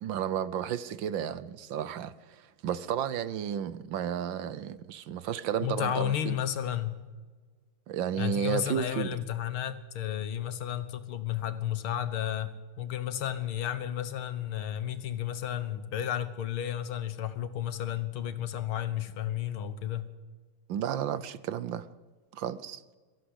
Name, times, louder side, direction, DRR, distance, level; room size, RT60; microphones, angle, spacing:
voice 1, 0.0-6.4 7.9-9.1 20.7-21.9 22.3-22.8, right 9 dB, 70° right, 16 dB, 1.4 m, -32 dB
voice 2, 5.6-6.9 8.2-12.5 12.8-20.1, left 11 dB, 75° left, 13 dB, 2.0 m, -32 dB
23.0 x 15.0 x 8.0 m, 1.5 s
omnidirectional pair, 2.4 m